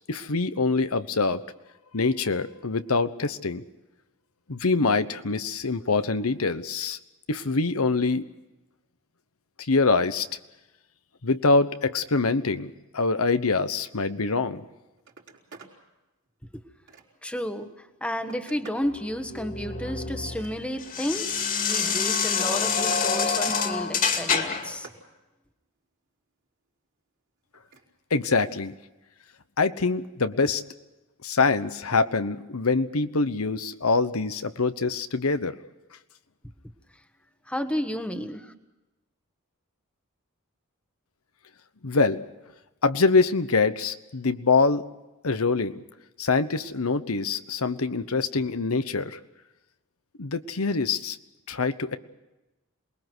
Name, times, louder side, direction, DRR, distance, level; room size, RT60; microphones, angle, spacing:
voice 1, 0.1-1.4 1.9-3.6 4.5-7.0 7.3-8.3 9.6-10.3 11.2-14.6 28.1-28.7 29.6-30.6 31.2-35.5 41.8-42.2 42.8-44.8 45.2-45.8 46.2-49.2 50.2-51.2 51.5-52.0, left 4 dB, 80° left, 10 dB, 1.1 m, -24 dB
Telephone, 14.5-14.7 15.0-15.8 16.3-17.3 17.9-18.9 20.2-21.0 22.0-23.1 23.5-23.9 24.3-25.1 27.5-27.9 29.3-29.4, right 4 dB, 55° right, 4.4 m, -50 dB
voice 2, 17.2-24.9 37.5-38.5, equal, 5° left, 7 dB, 1.4 m, -32 dB
sound 1, 18.9-24.8, left 6 dB, 40° left, 2.5 m, -27 dB
27.5 x 21.0 x 6.2 m, 1.0 s
head